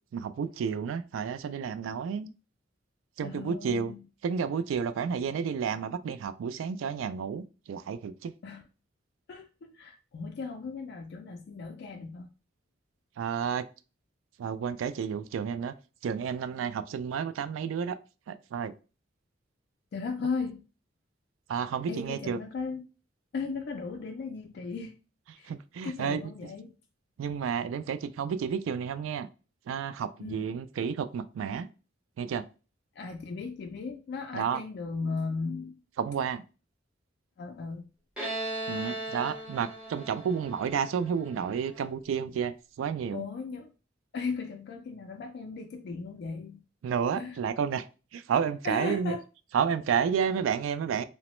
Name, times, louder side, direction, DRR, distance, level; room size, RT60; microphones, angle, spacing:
voice 1, 0.1-2.3 3.2-3.9 4.2-8.3 13.2-13.7 14.4-15.7 16.0-18.0 18.3-18.7 21.5-22.4 25.4-26.2 27.2-29.3 29.7-31.7 32.2-32.5 34.3-34.6 36.0-36.4 38.7-43.2 46.8-47.9 48.1-49.2 49.5-51.0, right 7 dB, 90° right, 13 dB, 0.3 m, -31 dB
voice 2, 3.2-4.0 8.4-8.6 9.3-12.3 19.9-20.6 21.9-22.8 23.3-24.9 25.4-25.5 25.8-26.7 30.2-30.5 33.0-35.8 37.4-37.8 43.1-43.7 44.1-46.6 47.2-47.4 48.6-49.2, left 4 dB, 55° left, 3 dB, 0.3 m, -36 dB
Bowed string instrument, 38.2-41.7, right 2 dB, 5° right, 0.9 m, -37 dB
2.9 x 2.1 x 3.0 m, 0.33 s
head